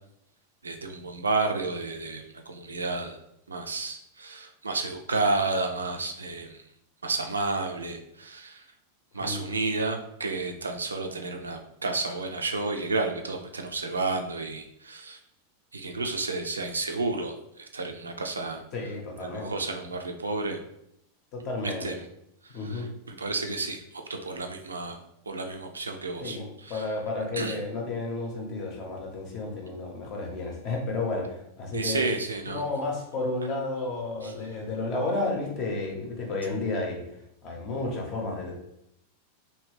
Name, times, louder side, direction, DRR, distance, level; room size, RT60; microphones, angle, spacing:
voice 1, 0.6-3.2 3.5-6.6 7.0-8.7 9.1-15.2 15.7-18.6 19.2-20.6 21.6-22.0 22.4-25.0 25.3-26.9 27.3-27.6 31.7-32.6 34.2-34.3, right 3 dB, 75° right, 4 dB, 0.3 m, -31 dB
voice 2, 18.7-19.5 21.3-21.9 22.5-22.9 26.2-32.1 32.5-37.0 37.4-38.5, left 2 dB, 40° left, 1 dB, 0.8 m, -32 dB
2.9 x 2.6 x 3.2 m, 0.79 s
figure-of-eight pair, 90°, 0 cm